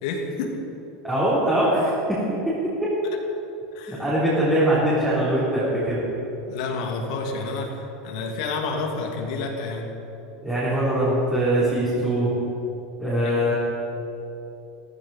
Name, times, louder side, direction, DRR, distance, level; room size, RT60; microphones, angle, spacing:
voice 1, 0.0-0.5 3.7-4.0 6.5-9.9 13.2-13.3, left 3 dB, 75° left, 1 dB, 2.6 m, -29 dB
voice 2, 1.0-3.0 3.9-6.0 10.4-12.4 13.0-13.5, right 1 dB, 10° right, -10 dB, 3.9 m, -22 dB
16.5 x 14.5 x 4.4 m, 3.0 s
supercardioid pair, 150°, 4 cm